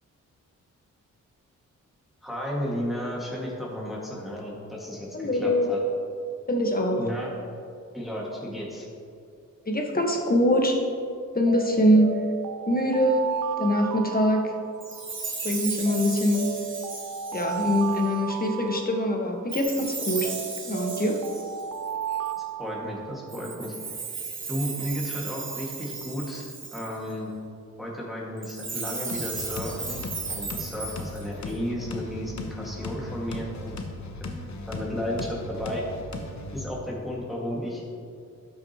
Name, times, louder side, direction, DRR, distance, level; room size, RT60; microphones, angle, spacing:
voice 1, 2.2-5.8 7.0-7.3 7.9-8.9 22.4-23.8 24.5-26.4 26.7-27.3 27.8-30.0 30.3-33.8 34.2-34.3 34.7-35.9 36.5-37.8, equal, ahead, -5 dB, 1.8 m, -33 dB
voice 2, 5.1-5.7 6.5-7.0 9.6-10.8 11.3-12.2 12.7-14.5 15.4-16.5 17.3-20.3 20.6-21.2, equal, 30° left, 2 dB, 1.3 m, -23 dB
Alarm, 11.5-15.2 15.9-19.6 20.2-23.5, right 9 dB, 80° right, 0.5 m, -34 dB
Chime, 14.8-18.1 19.5-22.3 23.3-27.1 28.4-31.5, right 4 dB, 40° right, 1.6 m, -36 dB
sound 1, 29.1-36.6, left 2 dB, 60° left, 1.0 m, -37 dB
12.5 x 6.2 x 2.9 m, 2.5 s
cardioid pair, 65°, 32 cm